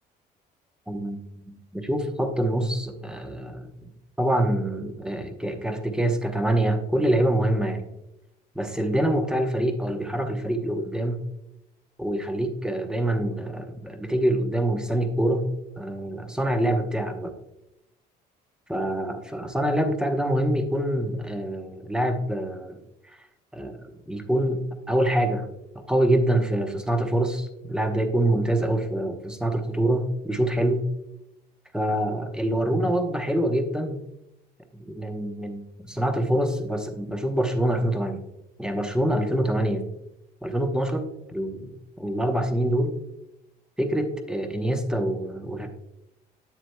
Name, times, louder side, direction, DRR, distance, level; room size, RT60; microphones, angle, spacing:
voice 1, 0.9-3.7 4.2-7.9 8.5-11.3 12.0-15.5 15.8-17.3 18.7-22.8 23.5-23.8 24.1-25.5 25.7-30.9 31.7-34.1 34.7-38.2 38.6-39.9 40.4-41.7 42.0-42.9 43.8-45.7, right 1 dB, 5° right, 5 dB, 0.9 m, -25 dB
9.1 x 7.3 x 2.2 m, 0.86 s
cardioid pair, 110°, 17 cm